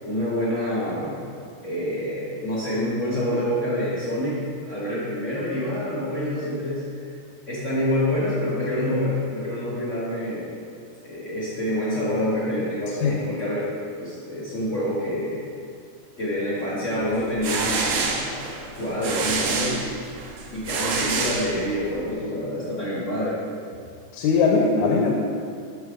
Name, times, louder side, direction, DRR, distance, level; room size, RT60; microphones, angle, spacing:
voice 1, 0.0-1.1 1.6-7.1 7.5-10.5 11.0-13.7 14.0-15.4 16.2-18.5 18.8-19.9 20.5-23.4, left 1 dB, 70° left, -8 dB, 0.7 m, -27 dB
sound 1, 17.1-22.0, right 4 dB, 90° right, 1.2 m, -27 dB
voice 2, 24.1-25.1, left 4 dB, 85° left, -1 dB, 2.1 m, -20 dB
10.5 x 6.2 x 2.5 m, 2.3 s
omnidirectional pair, 3.4 m